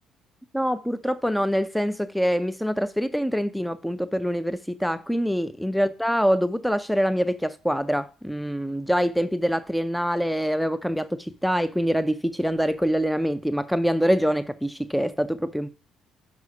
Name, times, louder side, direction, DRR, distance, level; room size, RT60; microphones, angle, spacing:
voice 1, 0.5-15.7, equal, ahead, 0.4 m, -25 dB
6.3 x 4.9 x 4.7 m
hypercardioid pair, 50°, 0 cm